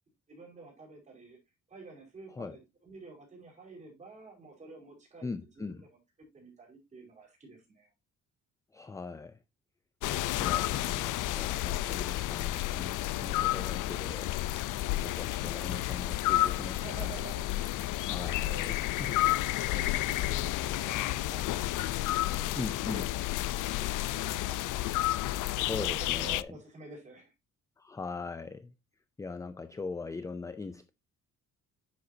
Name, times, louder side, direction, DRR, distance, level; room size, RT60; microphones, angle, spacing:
voice 1, 0.3-1.4 1.7-5.3 5.5-5.7 6.3-7.9 16.8-17.6 17.8-18.1 18.5-18.8 19.7-23.1 23.5-24.7 25.5-27.3, right 3 dB, 25° right, 5.1 m, -49 dB
voice 2, 5.2-5.8 8.7-9.4 10.4-14.3 15.0-17.3 18.1-19.2 22.5-23.1 25.5-26.6 27.8-28.7 29.2-30.9, left 4 dB, 10° left, 0.4 m, -40 dB
sound 1, 10.0-26.4, left 15 dB, 85° left, 0.6 m, -31 dB
10.0 x 7.8 x 2.7 m
cardioid pair, 175°, 30 cm